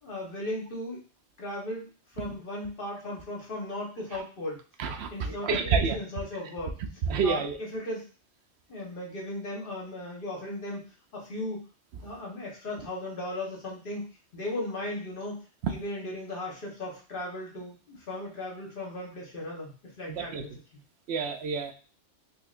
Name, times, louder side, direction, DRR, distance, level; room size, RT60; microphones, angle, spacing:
voice 1, 0.0-1.0 1.4-1.8 2.1-4.6 5.1-6.8 7.2-8.1 8.7-10.8 11.1-11.6 12.0-14.1 14.3-15.4 15.6-20.6, left 1 dB, 50° left, -2 dB, 1.1 m, -36 dB
voice 2, 4.8-6.0 7.1-7.6 20.1-20.4 21.1-21.7, right 5 dB, 65° right, 5 dB, 0.8 m, -28 dB
4.2 x 2.8 x 2.4 m, 0.38 s
omnidirectional pair, 1.2 m